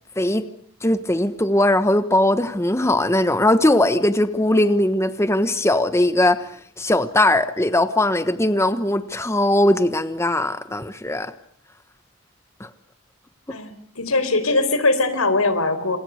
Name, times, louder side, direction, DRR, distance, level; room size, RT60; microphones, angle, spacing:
voice 1, 0.2-0.5 0.8-11.3 12.6-12.7 13.5-13.6, left 1 dB, 15° left, 10 dB, 1.2 m, -20 dB
voice 2, 13.5-16.0, left 2 dB, 90° left, 11 dB, 4.5 m, -21 dB
29.5 x 27.0 x 6.6 m, 0.63 s
head